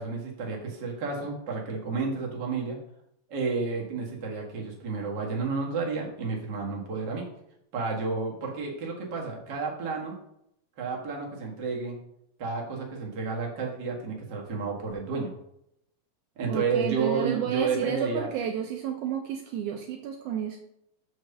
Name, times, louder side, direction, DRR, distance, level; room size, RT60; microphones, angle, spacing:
voice 1, 0.0-2.8 3.3-7.3 7.7-10.1 10.8-11.9 12.4-15.3 16.4-18.3, right 4 dB, 45° right, -1 dB, 1.6 m, -31 dB
voice 2, 16.5-20.6, right 8 dB, 75° right, 3 dB, 2.0 m, -31 dB
6.5 x 4.6 x 6.6 m, 0.77 s
omnidirectional pair, 4.0 m